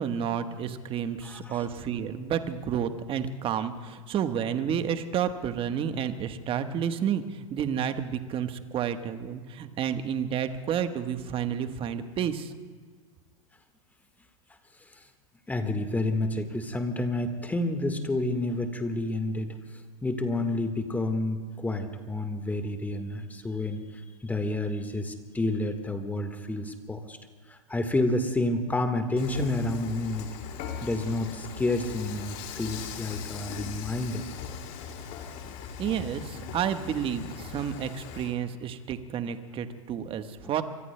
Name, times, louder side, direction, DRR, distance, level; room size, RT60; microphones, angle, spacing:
voice 1, 0.0-12.5 35.5-35.6 35.8-40.6, right 8 dB, 30° right, 9 dB, 1.2 m, -30 dB
voice 2, 1.2-1.7 14.8-15.1 15.5-27.2 27.5-30.3 30.8-34.3 40.4-40.5, left 2 dB, 10° left, 7 dB, 1.5 m, -30 dB
Dishes pots and pans / Frying (food), 29.2-38.3, left 7 dB, 45° left, 2.3 m, -40 dB
25.5 x 24.0 x 2.2 m, 1.5 s
hypercardioid pair, 105°, 17 cm